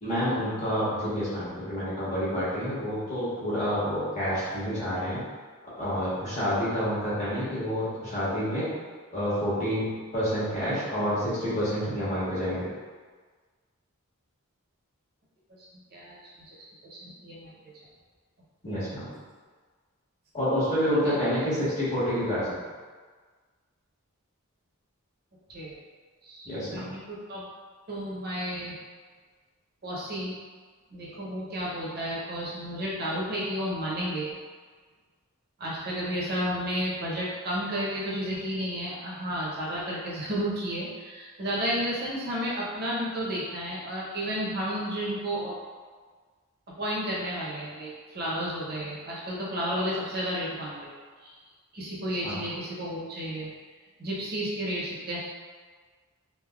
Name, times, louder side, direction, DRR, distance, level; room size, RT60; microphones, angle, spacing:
voice 1, 0.0-5.2 5.8-8.7 9.1-12.7 18.6-19.1 20.3-22.5 26.4-26.9 52.2-52.4, equal, 35° left, -11 dB, 1.2 m, -28 dB
voice 2, 15.9-16.5 16.9-17.5 18.7-18.8 25.5-25.7 26.2-27.4 27.9-28.7 29.8-30.3 30.9-34.3 35.6-45.5 46.8-50.9 51.2-51.3 51.7-53.5 54.0-55.2, equal, 45° right, -6 dB, 0.8 m, -32 dB
3.3 x 2.6 x 2.3 m, 1.5 s
head